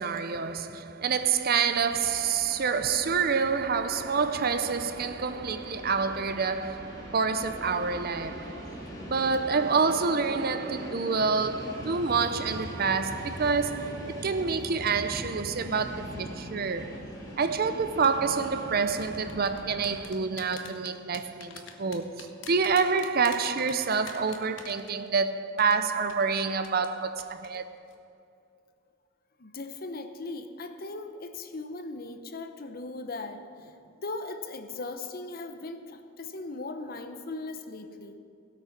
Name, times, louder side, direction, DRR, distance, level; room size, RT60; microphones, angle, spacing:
voice 1, 0.0-17.0 17.4-27.6, right 5 dB, 50° right, 0.6 m, -27 dB
Train, 1.1-20.0, equal, 20° left, 2.5 m, -42 dB
sound 1, 18.0-18.3 19.0-25.3 25.6-25.7 26.1-26.2 26.6-26.9 27.2-27.5 27.8-27.9, left 7 dB, 65° left, 1.3 m, -44 dB
voice 2, 29.4-38.2, left 2 dB, 45° left, 0.8 m, -38 dB
16.5 x 8.5 x 5.9 m
head